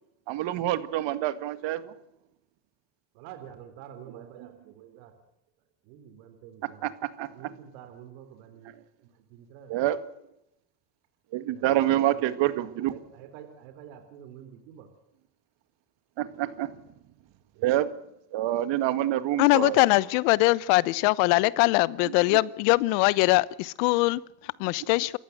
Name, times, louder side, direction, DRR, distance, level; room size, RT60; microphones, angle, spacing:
voice 1, 0.3-1.9 4.4-4.5 6.8-7.5 9.7-10.0 11.3-12.9 16.2-16.8 17.6-17.9 18.3-19.8, right 13 dB, 60° right, 2.1 m, -27 dB
voice 2, 3.1-5.1 5.8-6.9 7.3-8.7 9.3-9.9 11.5-12.3 12.6-14.9 17.6-17.7, right 9 dB, 75° right, 3.7 m, -48 dB
voice 3, 19.4-25.2, left 21 dB, 75° left, 1.1 m, -22 dB
28.5 x 15.0 x 7.9 m
supercardioid pair, 90°, 49 cm